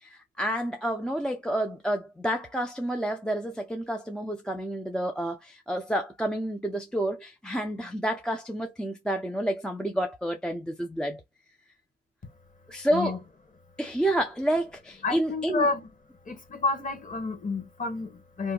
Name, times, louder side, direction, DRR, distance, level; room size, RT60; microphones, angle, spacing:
voice 1, 0.0-11.2 12.7-13.2 13.8-15.7, right 1 dB, 5° left, 0.4 m, -29 dB
voice 2, 15.0-15.9 16.3-18.5, left 3 dB, 25° left, 1.1 m, -30 dB
2.7 x 2.1 x 3.7 m
cardioid pair, 90°, 30 cm